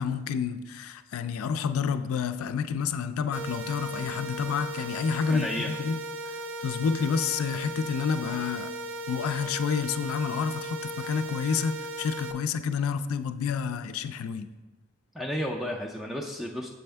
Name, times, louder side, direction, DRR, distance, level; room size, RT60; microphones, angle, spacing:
voice 1, 0.0-6.0 6.6-8.7 9.1-14.5, left 6 dB, 85° left, 11 dB, 0.3 m, -29 dB
sound 1, 3.3-12.3, right 1 dB, 65° right, 0.4 m, -37 dB
voice 2, 5.3-5.7 15.1-16.7, left 1 dB, ahead, 0 dB, 0.3 m, -32 dB
6.9 x 4.2 x 3.3 m, 1.2 s
head